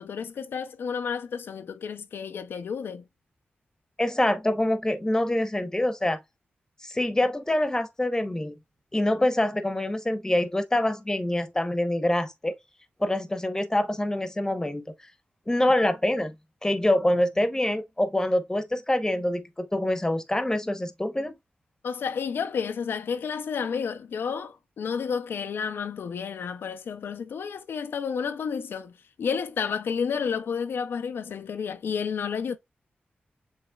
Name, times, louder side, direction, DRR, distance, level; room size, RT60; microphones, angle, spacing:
voice 1, 0.0-3.0 21.8-32.6, left 6 dB, 80° left, 0.4 m, -31 dB
voice 2, 4.0-6.2 6.8-8.5 8.9-12.5 13.0-14.9 15.5-16.3 16.6-21.3, left 1 dB, 15° left, 0.9 m, -25 dB
7.2 x 3.1 x 2.3 m
cardioid pair, 65°, 4 cm